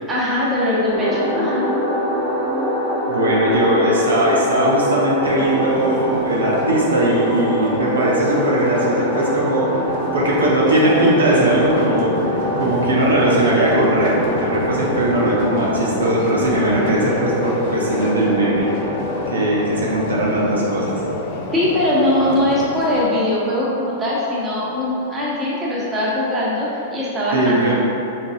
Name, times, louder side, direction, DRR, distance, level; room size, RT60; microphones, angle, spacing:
voice 1, 0.0-1.7 21.5-27.7, left 1 dB, 20° right, -7 dB, 1.3 m, -21 dB
sound 1, 0.9-19.5, equal, 5° left, 1.0 m, -24 dB
voice 2, 3.1-9.7 10.1-12.1 12.5-18.7 19.3-21.0 27.3-27.7, right 1 dB, 85° right, -5 dB, 0.7 m, -19 dB
sound 2, 5.2-23.0, left 3 dB, 50° left, 0.5 m, -29 dB
5.0 x 3.4 x 2.6 m, 2.9 s
hypercardioid pair, 110°, 0 cm